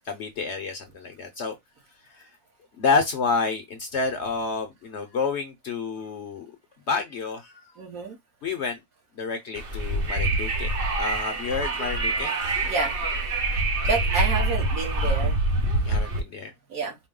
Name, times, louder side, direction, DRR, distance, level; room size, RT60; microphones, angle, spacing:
voice 1, 0.1-1.6 2.2-2.3 2.8-6.5 6.9-7.6 8.4-8.8 9.2-10.7 11.0-12.3 15.9-16.5, left 4 dB, 60° left, 0.8 m, -29 dB
voice 2, 7.8-8.2 12.6-13.0 13.9-15.4 16.7-17.0, right 4 dB, 70° right, 1.7 m, -29 dB
Wind, 9.5-16.2, right 2 dB, 45° right, 0.9 m, -25 dB
4.5 x 2.1 x 3.6 m
omnidirectional pair, 1.6 m